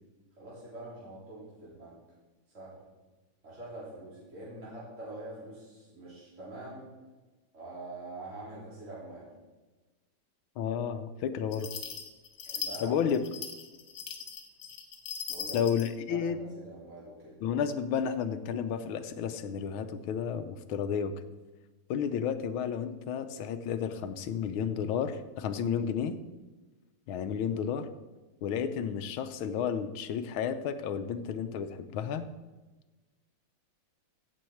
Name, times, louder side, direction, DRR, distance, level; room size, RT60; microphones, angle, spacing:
voice 1, 0.4-2.0 2.5-2.9 3.4-6.9 7.5-9.3 12.5-13.0 15.3-15.6 16.1-17.4, right 2 dB, 35° right, -8 dB, 3.8 m, -44 dB
voice 2, 10.6-11.7 12.8-13.2 15.5-16.4 17.4-21.1 21.9-26.2 27.1-27.9 28.4-32.3, left 7 dB, 85° left, 10 dB, 1.6 m, -32 dB
sound 1, 11.5-15.9, left 7 dB, 60° left, 1.7 m, -39 dB
15.5 x 7.2 x 4.5 m, 1.2 s
omnidirectional pair, 2.3 m